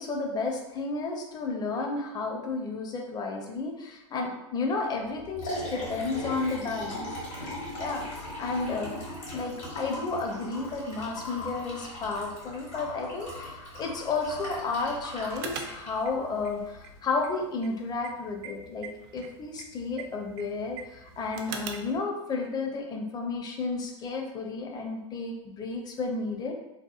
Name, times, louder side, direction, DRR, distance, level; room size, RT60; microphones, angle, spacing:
voice 1, 0.0-7.1 7.8-9.0 9.3-26.5, left 3 dB, 25° left, 2 dB, 0.5 m, -32 dB
Liquid, 5.0-17.0, left 1 dB, 75° left, 1.3 m, -39 dB
sound 1, 15.3-22.0, right 5 dB, 50° right, 0.4 m, -44 dB
2.7 x 2.2 x 2.3 m, 0.95 s
hypercardioid pair, 90°, 17 cm